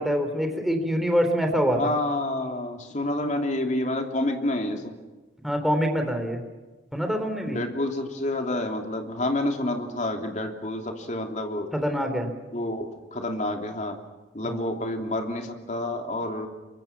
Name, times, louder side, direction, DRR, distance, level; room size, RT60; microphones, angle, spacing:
voice 1, 0.0-1.9 5.4-6.4 6.9-7.6 11.7-12.3 14.4-14.7, equal, ahead, 4 dB, 3.7 m, -25 dB
voice 2, 1.8-5.0 7.5-11.7 12.5-14.0 14.3-16.5, left 1 dB, 45° left, 4 dB, 3.1 m, -29 dB
28.0 x 24.0 x 6.0 m, 1.2 s
head